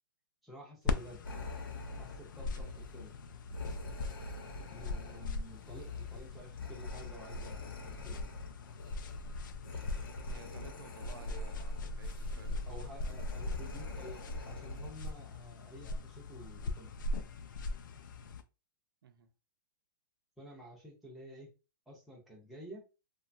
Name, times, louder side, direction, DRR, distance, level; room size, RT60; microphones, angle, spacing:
voice 1, 0.4-1.2 1.9-3.1 4.7-8.3 12.6-17.0 20.4-21.5 21.9-22.8, equal, ahead, 0.4 m, -51 dB
sound 1, 0.9-18.4, left 2 dB, 65° left, 0.4 m, -41 dB
sound 2, 1.2-15.1, left 2 dB, 80° left, 0.9 m, -45 dB
voice 2, 2.5-2.8 10.3-13.1 19.0-19.3, right 7 dB, 85° right, 0.5 m, -55 dB
2.9 x 2.2 x 2.5 m
hypercardioid pair, 175°, 12 cm